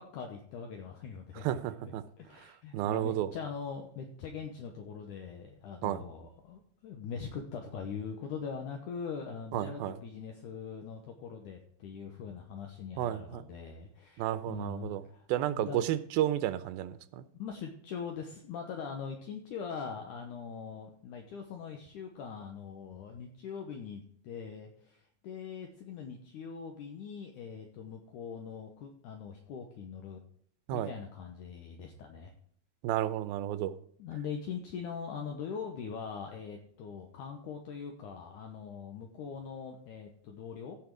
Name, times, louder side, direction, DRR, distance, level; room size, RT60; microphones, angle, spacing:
voice 1, 0.0-15.9 17.4-30.2 30.7-32.3 34.0-40.8, left 6 dB, 70° left, 3 dB, 2.3 m, -42 dB
voice 2, 1.4-2.0 2.7-3.3 5.8-6.0 9.5-10.0 13.0-13.4 14.2-15.0 15.3-17.2 30.7-30.9 32.8-33.7, right 12 dB, 85° right, 14 dB, 2.5 m, -32 dB
15.5 x 6.0 x 4.7 m, 0.62 s
omnidirectional pair, 4.2 m